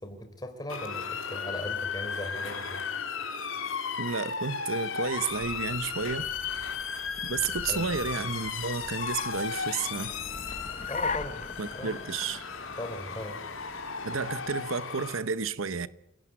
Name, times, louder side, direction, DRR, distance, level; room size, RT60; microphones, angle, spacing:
voice 1, 0.0-2.8 7.7-7.9 10.9-11.5 11.7-12.0 12.8-13.4, left 1 dB, 20° left, 3.9 m, -38 dB
Motor vehicle (road) / Siren, 0.7-15.2, left 6 dB, 75° left, 3.3 m, -35 dB
voice 2, 4.0-6.3 7.2-10.2 11.6-12.5 14.0-15.9, right 5 dB, 75° right, 0.9 m, -32 dB
Car, 5.3-14.6, left 4 dB, 35° left, 1.0 m, -41 dB
27.0 x 17.5 x 9.3 m
head